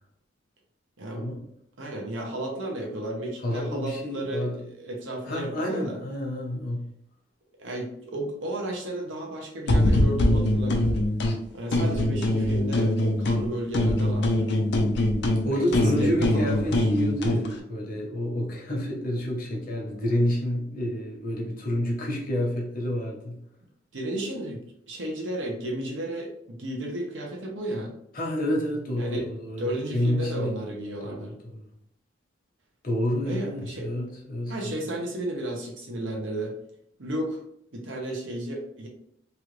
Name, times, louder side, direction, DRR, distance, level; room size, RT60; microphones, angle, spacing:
voice 1, 1.8-6.0 7.6-11.0 11.5-14.5 15.5-16.9 23.9-27.9 29.0-29.3 29.6-31.3 33.2-33.9 34.5-36.5 37.0-37.4 37.7-38.9, right 1 dB, 90° right, 1 dB, 0.8 m, -33 dB
voice 2, 3.4-4.6 5.3-6.9 15.4-23.4 28.1-31.6 32.8-34.8, equal, 50° left, -1 dB, 0.9 m, -29 dB
sound 1, 9.7-11.4 11.7-13.5 13.7-17.5, left 1 dB, 65° left, 0.5 m, -23 dB
3.1 x 2.5 x 3.1 m, 0.72 s
head